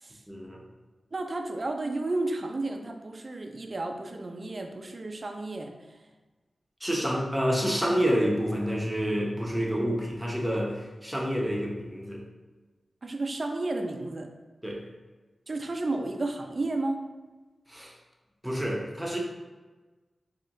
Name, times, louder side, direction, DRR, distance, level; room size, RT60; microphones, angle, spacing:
voice 1, 0.3-0.6 6.8-12.2 14.6-14.8 17.7-17.9 18.4-19.2, equal, 10° right, -2 dB, 0.9 m, -28 dB
voice 2, 1.1-5.7 13.0-14.3 15.5-17.0, right 2 dB, 50° right, 4 dB, 0.4 m, -32 dB
4.3 x 2.8 x 2.5 m, 1.2 s
cardioid pair, 45°, 0 cm